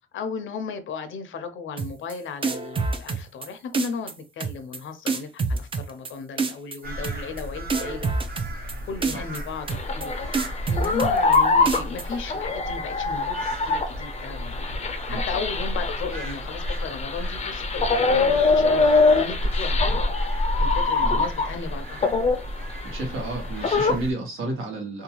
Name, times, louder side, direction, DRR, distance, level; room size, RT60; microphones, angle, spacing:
voice 1, 0.1-8.1 8.9-10.3 10.7-14.7 15.1-18.9 19.1-19.8 20.6-22.0, left 5 dB, 75° left, 0.6 m, -35 dB
sound 1, 1.8-2.1 2.4-3.5 3.7-4.1 4.4-4.8 5.1-6.1 6.4-6.8 7.0-7.4 7.7-8.7 9.0-9.4 9.7-10.1 10.3-11.4 11.7-12.0, right 4 dB, 25° right, 0.4 m, -26 dB
sound 2, 6.8-24.1, equal, 45° right, 1.0 m, -32 dB
sound 3, 9.7-21.7 22.0-23.9, left 3 dB, 35° left, 0.5 m, -24 dB
voice 2, 22.8-25.0, right 2 dB, 80° right, 1.2 m, -31 dB
2.7 x 2.3 x 2.9 m
cardioid pair, 110°, 20 cm